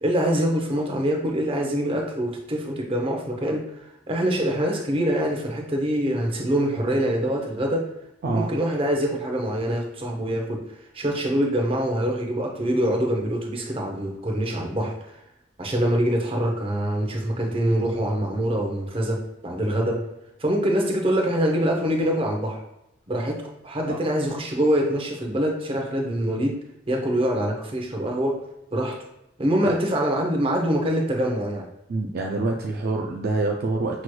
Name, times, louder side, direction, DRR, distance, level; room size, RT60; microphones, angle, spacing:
voice 1, 0.0-3.7 4.1-7.9 8.3-10.6 10.9-15.1 15.6-19.2 19.4-20.0 20.4-22.6 23.1-26.6 26.9-28.4 28.7-29.0 29.4-31.7, equal, 30° right, 1 dB, 0.7 m, -24 dB
voice 2, 31.9-34.0, right 3 dB, 50° right, 1 dB, 0.4 m, -26 dB
5.9 x 3.1 x 2.3 m, 0.87 s
head